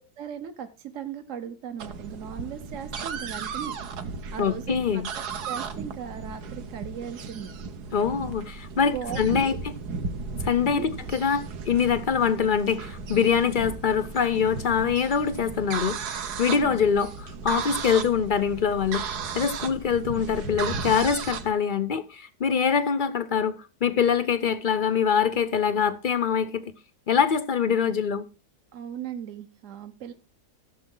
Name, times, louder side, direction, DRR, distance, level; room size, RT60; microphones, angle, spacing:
voice 1, 0.2-3.8 4.3-7.5 8.8-9.6 10.7-10.9 16.5-16.8 28.7-30.1, right 8 dB, 55° right, 1.1 m, -37 dB
sound 1, 1.8-21.5, right 5 dB, 70° right, 1.6 m, -35 dB
voice 2, 4.4-5.1 7.9-9.5 10.4-16.1 16.4-19.0 19.3-26.7 27.1-28.3, left 7 dB, 70° left, 0.4 m, -24 dB
15.0 x 7.1 x 3.8 m
omnidirectional pair, 1.8 m